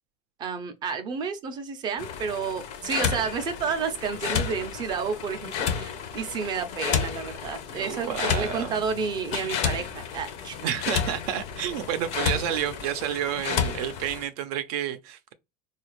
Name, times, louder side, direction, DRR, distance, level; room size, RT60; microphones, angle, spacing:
voice 1, 0.4-10.6, right 5 dB, 20° right, 0.5 m, -31 dB
sound 1, 2.0-14.3, left 7 dB, 35° left, 0.5 m, -31 dB
voice 2, 7.7-8.8 10.6-15.3, right 10 dB, 70° right, 0.5 m, -30 dB
4.1 x 2.4 x 3.0 m
cardioid pair, 175°, 20 cm